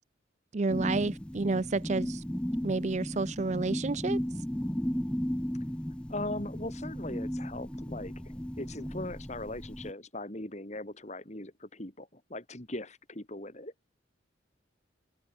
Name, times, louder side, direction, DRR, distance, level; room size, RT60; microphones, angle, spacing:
voice 1, 0.5-2.2 2.6-4.2, right 3 dB, 35° right, 0.5 m, -30 dB
sound 1, 0.7-9.9, equal, 5° left, 0.6 m, -35 dB
voice 2, 6.1-8.1 8.6-13.7, left 1 dB, 35° left, 3.0 m, -39 dB
head